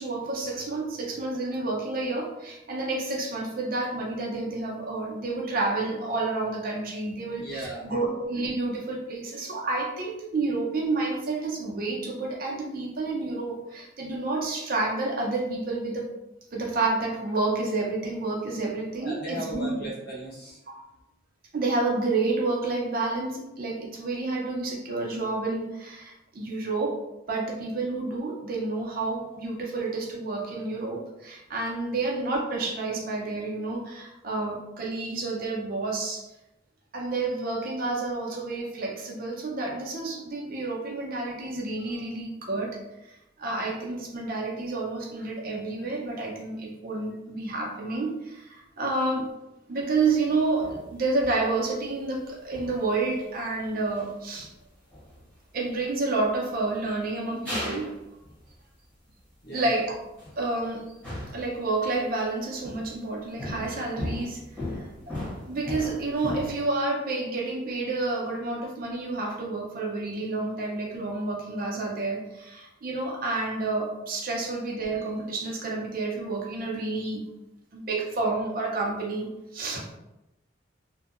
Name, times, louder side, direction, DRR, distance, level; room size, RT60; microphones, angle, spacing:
voice 1, 0.0-16.1 16.5-19.7 20.7-20.8 21.5-27.0 27.3-36.2 36.9-42.8 43.4-49.3 49.7-54.5 55.5-57.9 59.5-60.0 60.4-60.8 61.3-64.4 64.8-65.2 65.5-77.3 77.7-79.8, right 3 dB, 50° right, -1 dB, 0.5 m, -29 dB
voice 2, 7.4-7.9 19.0-20.8 54.6-54.7 59.4-59.8, right 1 dB, 60° left, -5 dB, 1.0 m, -37 dB
sound 1, 50.0-50.1 50.6-51.5 52.3-52.9 53.9-54.0 54.3-54.5 54.9-55.3 56.2-56.3 56.8-56.9 57.4-57.9 58.2-58.5 59.9-60.4 61.0-62.0 62.6-63.0 63.4-66.6, left 1 dB, 5° left, 1.0 m, -37 dB
2.6 x 2.1 x 2.4 m, 0.92 s
head